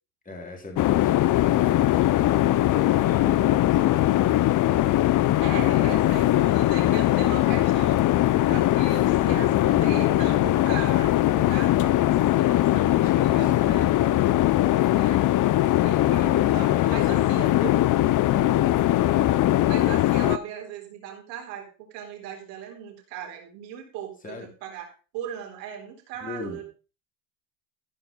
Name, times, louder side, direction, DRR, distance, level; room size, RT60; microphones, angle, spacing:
voice 1, 0.2-4.5 5.5-5.7 13.4-14.1 16.2-17.5 24.2-24.5 26.2-26.6, left 2 dB, 15° left, 1 dB, 3.5 m, -40 dB
sound 1, 0.8-20.4, left 14 dB, 40° left, 0.7 m, -21 dB
voice 2, 5.2-8.0 8.5-14.3 14.9-15.2 15.8-17.7 19.7-24.9 25.1-26.6, right 9 dB, 90° right, 2 dB, 4.1 m, -38 dB
14.5 x 6.0 x 5.5 m, 0.35 s
supercardioid pair, 110°, 48 cm